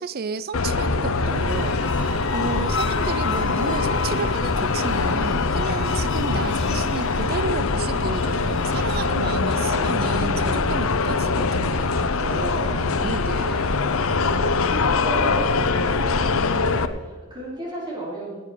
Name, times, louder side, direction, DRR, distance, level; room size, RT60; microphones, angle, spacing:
voice 1, 0.0-1.8 2.3-13.8, right 4 dB, 45° right, 16 dB, 0.5 m, -32 dB
sound 1, 0.5-16.9, left 4 dB, 75° left, 0.8 m, -23 dB
sound 2, 1.0-10.4, left 3 dB, 60° left, 2.1 m, -34 dB
voice 2, 12.1-18.4, right 1 dB, 20° right, -6 dB, 5.0 m, -36 dB
18.5 x 8.9 x 5.0 m, 1.4 s
head